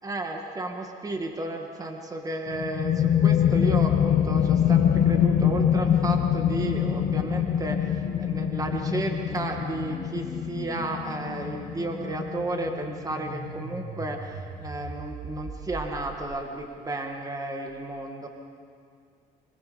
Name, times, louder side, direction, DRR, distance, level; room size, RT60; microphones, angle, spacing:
voice 1, 0.0-18.3, right 2 dB, 20° right, 3 dB, 2.0 m, -33 dB
sound 1, 2.5-13.8, left 9 dB, 60° left, 1.1 m, -24 dB
sound 2, 6.5-16.5, right 2 dB, 70° right, 5.9 m, -42 dB
25.0 x 20.5 x 5.2 m, 2.3 s
cardioid pair, 110°, 17 cm